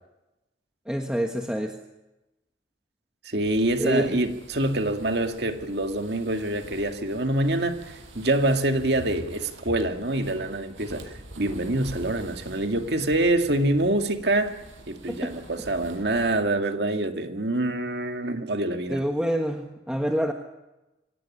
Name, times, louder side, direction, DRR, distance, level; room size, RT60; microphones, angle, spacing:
voice 1, 0.9-1.8 3.8-4.2 15.1-15.3 18.9-20.3, equal, 5° right, 1.4 m, -26 dB
voice 2, 3.2-11.1 11.4-14.5 14.9-19.0, right 1 dB, 60° right, 2.2 m, -25 dB
sound 1, 3.4-16.4, right 1 dB, 90° right, 6.3 m, -46 dB
25.0 x 18.0 x 9.9 m
head